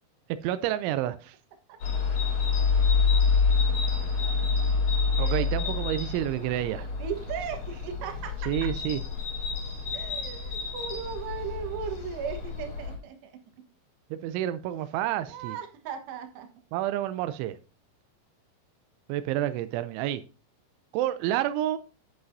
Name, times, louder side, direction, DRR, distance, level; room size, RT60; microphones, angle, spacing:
voice 1, 0.4-1.4 5.2-6.9 8.5-9.0 14.1-15.6 16.7-17.6 19.1-20.2 20.9-21.8, right 12 dB, 90° right, 12 dB, 3.0 m, -29 dB
sound 1, 1.8-13.0, left 4 dB, 50° left, 4.1 m, -27 dB
voice 2, 5.2-5.8 7.0-8.7 9.9-13.3 15.3-16.5, right 7 dB, 70° right, 5 dB, 3.3 m, -37 dB
11.0 x 8.0 x 2.6 m, 0.35 s
omnidirectional pair, 5.3 m